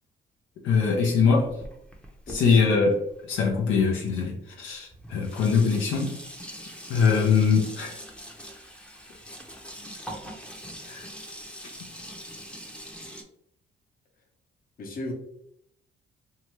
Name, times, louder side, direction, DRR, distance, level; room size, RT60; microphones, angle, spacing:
voice 1, 0.6-1.6 2.3-3.0 3.2-6.2 6.9-8.0 10.9-11.1, left 5 dB, 85° left, 0.6 m, -22 dB
Sink (filling or washing), 0.7-3.8 4.6-4.7 4.9-13.2, equal, 5° left, 0.6 m, -43 dB
voice 2, 2.3-2.7 9.1-9.2 14.8-15.1, left 2 dB, 45° left, 0.9 m, -36 dB
2.7 x 2.3 x 3.1 m
cardioid pair, 90°, 20 cm